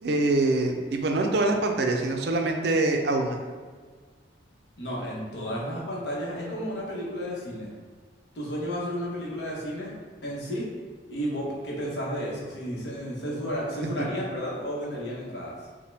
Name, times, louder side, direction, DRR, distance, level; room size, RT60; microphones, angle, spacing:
voice 1, 0.0-3.4 14.0-14.1, right 2 dB, 55° right, 3 dB, 0.4 m, -24 dB
voice 2, 4.8-7.7 8.3-9.9 10.2-10.7 11.1-15.6, equal, 60° left, -4 dB, 1.1 m, -32 dB
5.5 x 2.2 x 3.3 m, 1.5 s
head